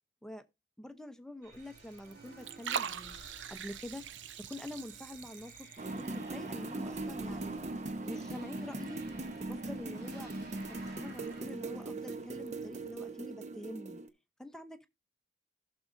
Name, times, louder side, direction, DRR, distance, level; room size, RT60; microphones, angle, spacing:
voice 1, 0.8-3.2 3.5-4.0 4.4-7.6 8.1-9.0 9.4-10.3 10.7-14.0 14.4-14.9, left 1 dB, 5° left, 0.7 m, -46 dB
sound 1, 1.4-11.4, right 2 dB, 60° right, 3.4 m, -55 dB
Liquid, 1.5-13.0, right 7 dB, 85° right, 0.6 m, -46 dB
sound 2, 5.8-14.1, right 2 dB, 40° right, 0.8 m, -40 dB
15.5 x 6.2 x 2.6 m
head